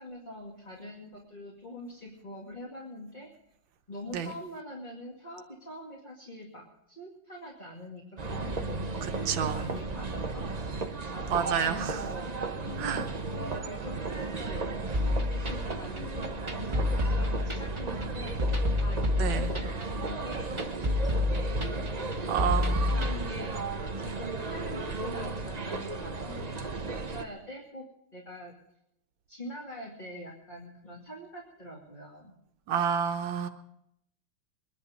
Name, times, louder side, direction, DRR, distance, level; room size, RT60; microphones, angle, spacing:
voice 1, 0.0-3.3 3.9-8.0 8.3-10.5 11.1-23.7 24.0-27.8 28.1-28.5 29.3-32.3, left 1 dB, 20° left, -3 dB, 2.3 m, -44 dB
sound 1, 8.2-27.2, right 3 dB, 40° right, 0.5 m, -35 dB
voice 2, 9.3-9.7 11.3-12.0 12.8-13.1 19.2-19.5 22.3-22.9 32.7-33.5, right 8 dB, 75° right, 6 dB, 1.8 m, -29 dB
sound 2, 14.9-23.1, left 2 dB, 15° right, 1.4 m, -29 dB
21.5 x 11.0 x 5.1 m, 0.78 s
omnidirectional pair, 2.2 m